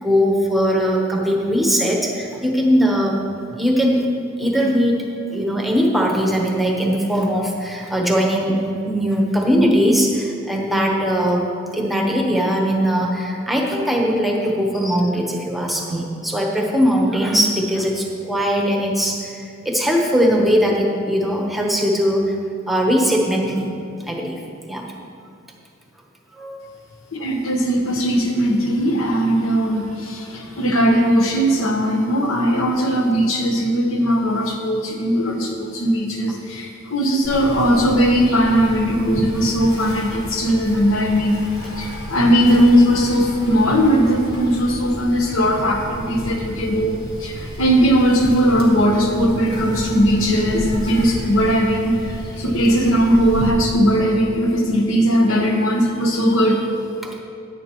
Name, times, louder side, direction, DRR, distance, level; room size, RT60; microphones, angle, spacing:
voice 1, 0.0-3.2 3.5-4.1 4.4-5.0 5.3-11.5 11.7-22.4 22.7-23.7 24.0-24.4 24.7-24.9 26.3-26.6 57.0-57.2, equal, ahead, -1 dB, 1.0 m, -20 dB
voice 2, 27.1-41.4 41.8-56.7, equal, 70° left, 2 dB, 1.1 m, -18 dB
Insect, 37.2-53.5, equal, 50° left, 1.7 m, -32 dB
10.0 x 9.3 x 3.0 m, 2.4 s
head